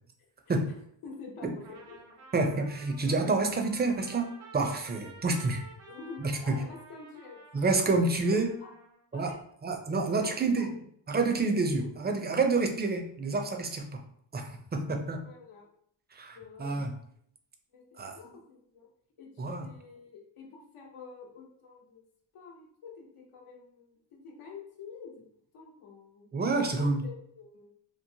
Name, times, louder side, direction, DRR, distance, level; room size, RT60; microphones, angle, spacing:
voice 1, 1.0-2.2 5.9-7.6 8.3-8.7 9.1-9.4 9.8-9.9 10.2-10.8 15.2-15.7 16.3-17.0 17.7-18.9 19.2-22.0 22.3-25.2 25.5-26.3 26.6-27.7, left 5 dB, 80° left, -1 dB, 0.9 m, -48 dB
Trumpet, 1.6-9.0, right 3 dB, 80° right, 1.1 m, -52 dB
voice 2, 2.3-5.6 6.2-6.6 7.5-8.6 9.1-10.7 11.1-14.0 14.3-15.2 16.1-16.9 18.0-18.2 19.4-19.7 26.3-27.0, right 3 dB, 20° right, 5 dB, 0.4 m, -28 dB
3.0 x 2.0 x 2.7 m, 0.66 s
cardioid pair, 60°, 49 cm